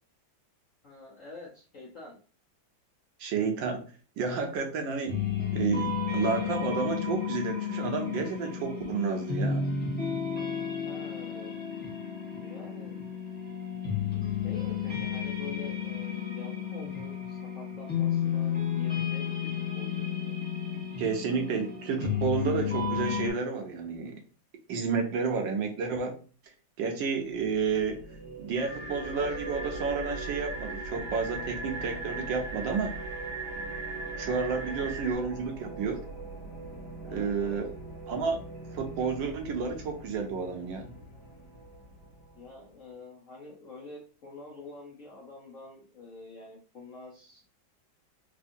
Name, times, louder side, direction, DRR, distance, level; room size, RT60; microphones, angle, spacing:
voice 1, 0.8-2.2 10.8-11.5 12.3-13.3 14.4-20.4 34.6-34.9 37.0-37.6 42.3-47.4, left 3 dB, 60° left, -4 dB, 0.8 m, -47 dB
voice 2, 3.2-3.8 4.2-5.2 5.5-9.7 21.0-24.1 24.7-26.2 26.8-28.0 28.4-32.9 34.2-36.0 37.1-37.7 38.1-38.4 38.7-40.9, right 5 dB, 70° right, 4 dB, 1.2 m, -31 dB
sound 1, 5.1-23.3, left 7 dB, 10° left, 0.6 m, -32 dB
sound 2, 27.3-42.7, right 3 dB, 35° left, 1.4 m, -42 dB
sound 3, 28.5-35.2, right 3 dB, 50° right, 0.8 m, -40 dB
3.5 x 3.0 x 2.6 m, 0.39 s
omnidirectional pair, 2.2 m